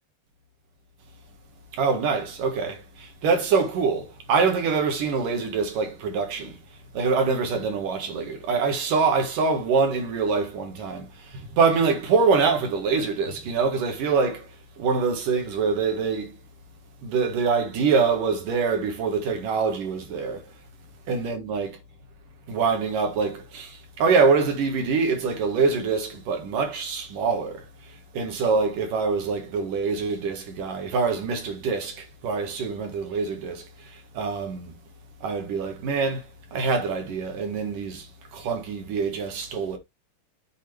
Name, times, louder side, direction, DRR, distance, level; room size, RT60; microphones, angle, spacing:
voice 1, 1.7-6.6 6.9-14.5 14.8-16.3 17.0-20.4 21.1-21.8 22.5-34.7 35.2-39.8, right 5 dB, 65° right, 3.1 m, -25 dB
8.4 x 6.1 x 3.4 m
omnidirectional pair, 4.5 m